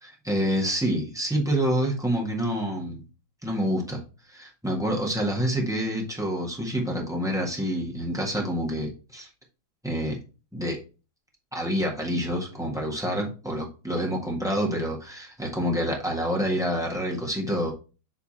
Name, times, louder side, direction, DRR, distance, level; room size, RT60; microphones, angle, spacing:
voice 1, 0.0-3.0 3.4-4.0 4.3-9.3 9.8-10.2 10.5-10.8 11.5-17.7, equal, ahead, -2 dB, 1.3 m, -27 dB
8.2 x 3.4 x 4.2 m, 0.33 s
omnidirectional pair, 2.3 m